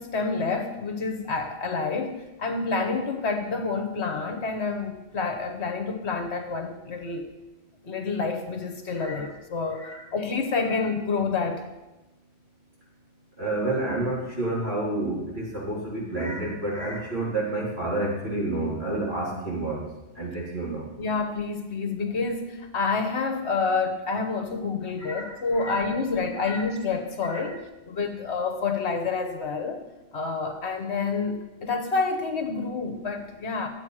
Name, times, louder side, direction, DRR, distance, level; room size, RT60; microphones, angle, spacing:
voice 1, 0.0-7.3 7.8-11.6 21.0-29.8 30.1-33.7, left 4 dB, 65° left, 5 dB, 1.3 m, -28 dB
voice 2, 9.7-10.0 10.7-10.8 13.4-19.8 20.2-20.9 25.0-25.2 25.5-25.8 26.3-26.6 27.2-27.4, right 2 dB, 55° right, -5 dB, 3.7 m, -29 dB
11.5 x 8.2 x 4.8 m, 1.0 s
omnidirectional pair, 1.3 m